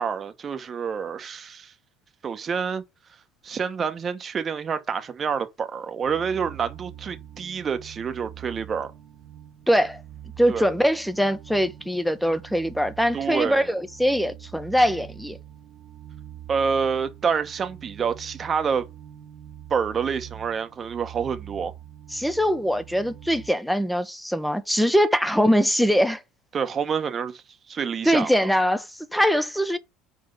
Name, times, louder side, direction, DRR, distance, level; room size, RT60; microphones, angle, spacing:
voice 1, 0.0-1.7 2.2-2.8 3.4-8.9 10.5-10.7 13.1-13.7 16.5-18.8 19.7-21.7 26.5-27.4 27.7-28.3, right 6 dB, 35° right, 1.0 m, -27 dB
sound 1, 6.0-23.5, right 11 dB, 65° right, 1.2 m, -44 dB
voice 2, 9.7-10.0 10.4-15.4 22.1-26.2 28.0-29.8, equal, ahead, 0.7 m, -22 dB
4.6 x 3.9 x 5.2 m
supercardioid pair, 100°, 0 cm